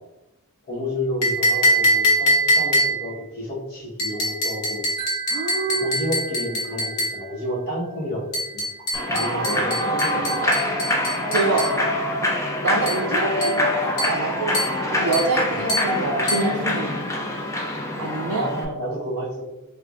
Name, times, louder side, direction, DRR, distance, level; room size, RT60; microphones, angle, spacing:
voice 1, 0.7-4.9 5.7-8.2 8.5-8.7 9.1-10.5 15.5-15.7 18.2-19.4, equal, 45° left, -5 dB, 1.2 m, -30 dB
sound 1, 1.2-3.2 4.0-7.2 8.3-11.8 12.9-13.1 13.4-13.7 14.0-14.3 14.5-14.8 15.1-15.4 15.7-15.9 16.3-16.5, equal, 80° left, 1.0 m, -24 dB
Wind chime, 5.0-8.1, right 9 dB, 30° right, 0.6 m, -38 dB
voice 2, 5.3-5.9 9.2-10.5 11.3-11.7 12.6-17.0 18.0-18.5, right 3 dB, 80° right, 0 dB, 0.4 m, -26 dB
Human voice / Clapping / Cheering, 8.9-18.6, left 1 dB, 15° left, 0.4 m, -25 dB
4.5 x 2.4 x 2.4 m, 0.98 s
head